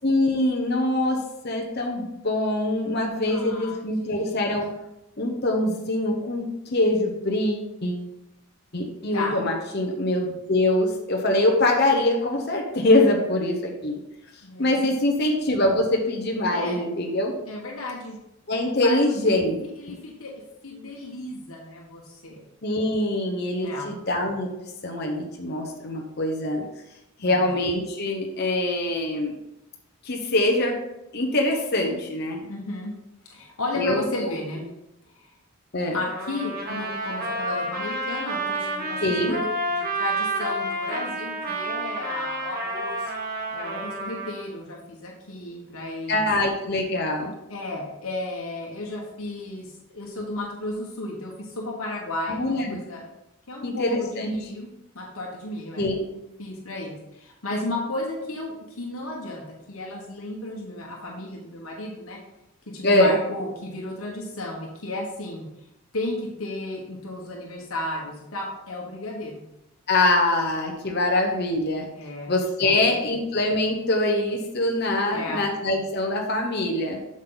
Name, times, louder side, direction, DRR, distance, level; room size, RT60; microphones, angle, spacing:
voice 1, 0.0-4.7 5.2-8.0 8.7-14.0 14.6-17.3 18.5-19.6 19.8-19.9 22.6-24.5 24.8-26.6 27.2-29.3 30.0-30.9 31.1-32.5 33.8-34.3 35.7-36.0 39.0-39.3 46.1-47.3 52.3-52.8 53.6-54.4 55.8-56.0 62.8-63.1 69.9-71.9 72.3-77.0, left 1 dB, 45° left, 1 dB, 1.0 m, -24 dB
voice 2, 3.3-4.5 9.1-9.4 14.4-14.9 16.5-16.8 17.5-18.2 18.8-19.4 19.8-20.3 20.6-22.4 23.6-23.9 27.2-27.6 32.5-32.9 33.2-34.6 35.2-35.3 35.9-43.1 43.5-46.3 47.5-53.0 53.5-54.7 54.9-55.9 56.4-62.2 62.7-65.5 65.9-69.4 71.9-72.3 72.6-73.2 75.1-75.4, left 2 dB, 70° left, -2 dB, 1.4 m, -34 dB
Trumpet, 36.1-44.4, right 1 dB, 40° right, 1.5 m, -29 dB
7.9 x 6.4 x 4.0 m, 0.89 s
head